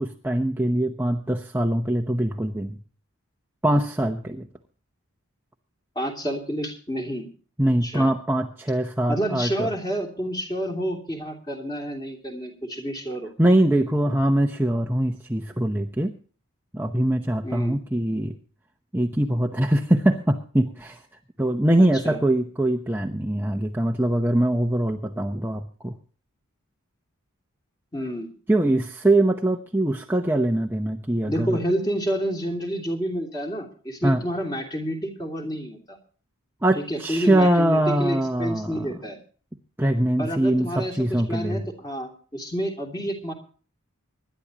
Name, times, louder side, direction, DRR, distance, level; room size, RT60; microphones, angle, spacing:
voice 1, 0.0-2.8 3.6-4.5 7.6-9.7 13.4-16.1 16.7-18.4 18.9-21.0 21.4-26.0 28.5-31.6 34.0-34.2 36.6-38.9 39.8-41.6, right 1 dB, 10° right, 2 dB, 0.8 m, -23 dB
voice 2, 5.9-7.3 7.8-8.1 9.1-13.3 17.4-17.8 21.8-22.2 27.9-28.3 31.3-36.0 36.7-39.2 40.2-43.3, equal, 20° left, 2 dB, 3.0 m, -29 dB
25.5 x 11.5 x 3.0 m, 0.41 s
head